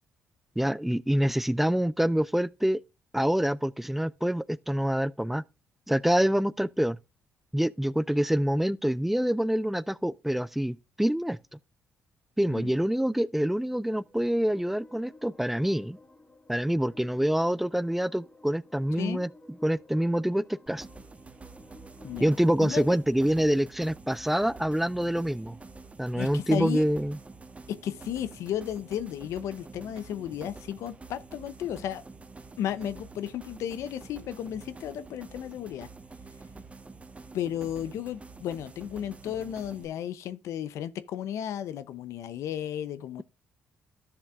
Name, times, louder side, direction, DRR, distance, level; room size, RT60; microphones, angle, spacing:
voice 1, 0.6-2.8 3.1-5.4 5.9-7.0 7.5-11.4 12.4-16.0 16.5-19.3 19.6-20.8 22.2-25.6 26.0-27.2, equal, 5° right, 0.4 m, -26 dB
sound 1, 13.8-23.1, left 2 dB, 20° left, 2.2 m, -54 dB
sound 2, 20.7-39.9, right 3 dB, 25° right, 1.2 m, -47 dB
voice 2, 22.6-22.9 26.1-26.8 27.7-32.0 32.6-35.9 37.3-43.2, left 10 dB, 75° left, 0.6 m, -34 dB
12.5 x 7.0 x 2.4 m
supercardioid pair, 65°, 5 cm